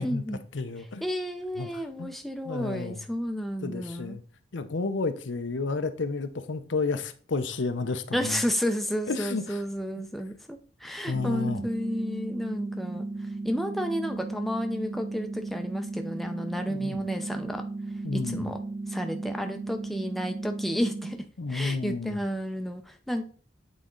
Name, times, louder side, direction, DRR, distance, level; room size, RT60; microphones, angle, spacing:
voice 1, 0.0-0.4 1.0-4.2 8.1-13.1 13.4-17.6 18.1-18.6 18.9-21.2 21.5-23.3, equal, ahead, 0.5 m, -31 dB
voice 2, 0.5-1.0 1.6-2.1 2.4-3.0 3.6-4.2 4.5-8.4 9.1-9.6 11.0-11.6 16.7-17.0 18.0-18.5 21.4-22.2, left 3 dB, 75° left, 0.7 m, -31 dB
sound 1, 11.1-21.1, right 3 dB, 35° right, 0.9 m, -35 dB
8.2 x 4.1 x 3.8 m
head